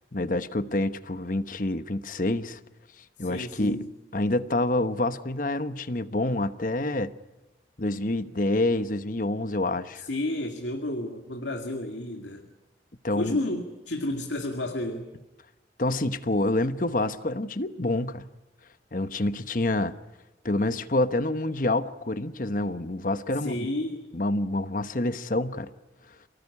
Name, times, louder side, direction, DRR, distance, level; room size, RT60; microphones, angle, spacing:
voice 1, 0.1-2.6 3.2-3.9 4.1-7.1 7.8-10.1 13.0-13.4 15.8-18.3 18.9-20.0 20.4-23.7 24.1-25.7, left 2 dB, 45° left, 12 dB, 1.1 m, -27 dB
voice 2, 3.2-3.9 9.9-12.5 13.2-15.1 23.3-24.0, left 1 dB, 80° left, 4 dB, 2.3 m, -31 dB
29.0 x 19.0 x 9.8 m, 1.0 s
head